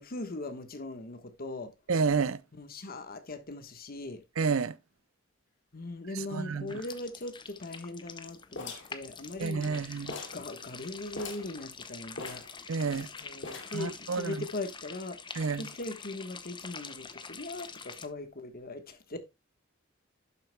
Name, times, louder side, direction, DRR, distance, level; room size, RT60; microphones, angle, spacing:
voice 1, 0.0-1.7 2.5-4.2 5.7-9.8 10.3-12.4 13.0-15.2 15.6-19.2, left 2 dB, 45° left, 1.3 m, -40 dB
voice 2, 1.9-2.4 4.4-4.7 6.1-6.8 9.4-10.2 12.7-13.1 13.7-14.5 15.3-15.7, right 5 dB, 80° right, 0.6 m, -30 dB
sound 1, 6.7-18.1, left 5 dB, 25° left, 0.8 m, -46 dB
sound 2, 8.6-9.8 10.1-10.5 10.8-10.9 11.1-11.5 12.2-13.0 13.4-13.9, left 3 dB, 60° left, 2.6 m, -42 dB
11.5 x 7.8 x 2.2 m
head